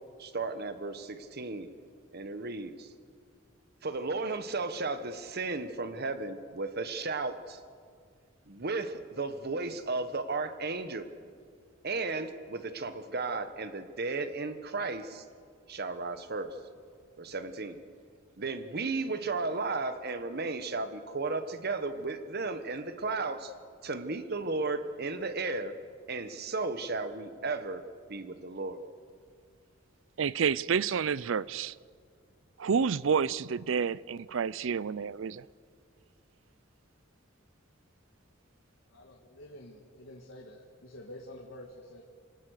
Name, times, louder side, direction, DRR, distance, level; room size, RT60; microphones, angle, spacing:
voice 1, 0.2-1.7 2.1-2.9 3.8-7.6 8.5-11.1 11.8-15.2 15.7-16.6 17.2-17.8 18.4-23.5 23.8-25.7 26.1-27.8 28.1-28.8, right 3 dB, 55° right, 10 dB, 1.3 m, -34 dB
voice 2, 30.2-31.7 32.6-35.4, right 6 dB, 70° right, 21 dB, 0.5 m, -29 dB
voice 3, 38.9-42.0, left 1 dB, 75° left, 0 dB, 2.1 m, -48 dB
28.0 x 18.0 x 6.6 m, 2.1 s
head